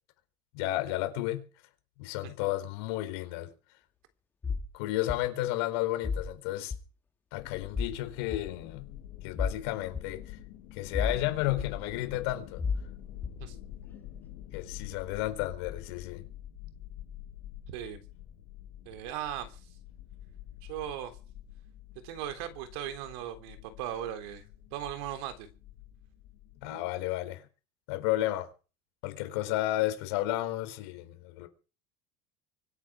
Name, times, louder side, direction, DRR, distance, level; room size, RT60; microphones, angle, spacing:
voice 1, 0.5-1.4 2.0-3.5 4.7-6.7 7.3-8.9 9.2-10.2 10.7-12.6 14.5-16.2 26.6-27.5 27.9-28.5 29.0-31.5, left 15 dB, 85° left, 4.3 m, -32 dB
sound 1, 4.4-4.7 5.1-5.2 6.0-6.3 6.7-6.8 7.7-7.9 8.3-8.4 9.4-9.6 9.9-10.0 10.9-11.2 11.6-11.7 12.6-12.8 13.2-13.4, left 5 dB, 15° left, 2.1 m, -31 dB
sound 2, 7.3-26.7, left 12 dB, 55° left, 4.1 m, -47 dB
voice 2, 17.7-18.0 18.9-19.6 20.6-21.1 22.0-24.4 24.7-25.5 26.6-26.9, right 11 dB, 85° right, 3.6 m, -38 dB
24.5 x 9.3 x 6.2 m
cardioid pair, 170°, 13 cm